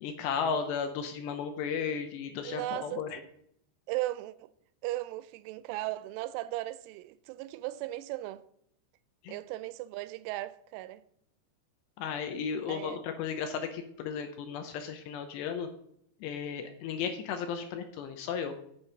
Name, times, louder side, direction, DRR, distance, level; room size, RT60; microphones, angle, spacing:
voice 1, 0.0-3.2 9.2-9.4 12.0-15.7 16.2-18.6, left 6 dB, 80° left, 2.6 m, -34 dB
voice 2, 2.4-3.3 3.9-4.5 4.8-8.4 9.3-11.0 12.7-13.0, right 16 dB, 90° right, 3.0 m, -37 dB
9.7 x 7.5 x 4.0 m
omnidirectional pair, 5.5 m